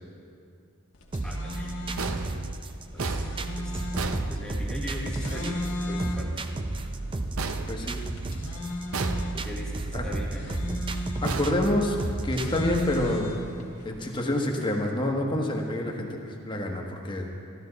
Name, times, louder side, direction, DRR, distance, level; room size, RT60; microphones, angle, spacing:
sound 1, 0.9-13.9, left 1 dB, 85° left, 1.5 m, -37 dB
sound 2, 1.1-13.1, right 2 dB, 25° right, 0.5 m, -33 dB
voice 1, 1.2-1.8 2.8-3.8 4.3-5.6 5.9-6.5 9.3-10.4, equal, 5° left, -3 dB, 1.2 m, -40 dB
sound 3, 2.0-5.0 7.4-8.4 8.9-9.7 11.2-12.3, right 4 dB, 70° right, 0.6 m, -35 dB
voice 2, 7.7-8.0 9.5-9.6 9.9-10.0 11.2-12.0 12.2-13.3 13.8-17.3, left 1 dB, 20° left, 1 dB, 1.2 m, -27 dB
14.0 x 13.0 x 4.0 m, 2.4 s
head